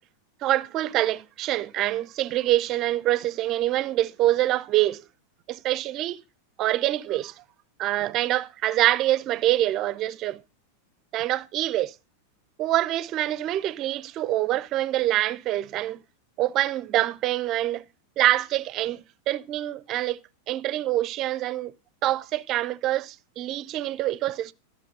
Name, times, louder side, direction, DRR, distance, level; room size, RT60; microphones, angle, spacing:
voice 1, 0.4-5.0 5.5-6.2 6.6-7.3 7.8-10.4 11.1-11.9 12.6-16.0 16.4-17.9 18.2-20.2 20.5-21.7 22.0-24.5, right 14 dB, 35° right, 0.5 m, -25 dB
13.0 x 6.0 x 5.3 m
figure-of-eight pair, 90°, 0 cm